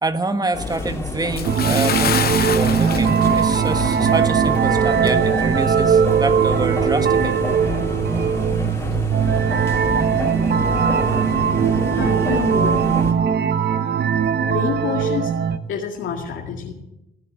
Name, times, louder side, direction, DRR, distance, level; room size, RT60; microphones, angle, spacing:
voice 1, 0.0-7.5, right 2 dB, 20° right, 9 dB, 1.4 m, -26 dB
sound 1, 0.5-13.1, left 2 dB, 15° left, 3.4 m, -28 dB
Bathtub (filling or washing) / Splash splatter, 1.4-4.2 4.5-4.7 5.3-5.4, left 9 dB, 50° left, 0.7 m, -27 dB
sound 2, 1.5-15.6, right 7 dB, 55° right, 1.0 m, -19 dB
voice 2, 11.9-12.8 14.4-15.4 15.7-16.7, left 7 dB, 75° left, 0 dB, 2.2 m, -27 dB
16.5 x 9.8 x 8.7 m, 0.93 s
cardioid pair, 90°, 20 cm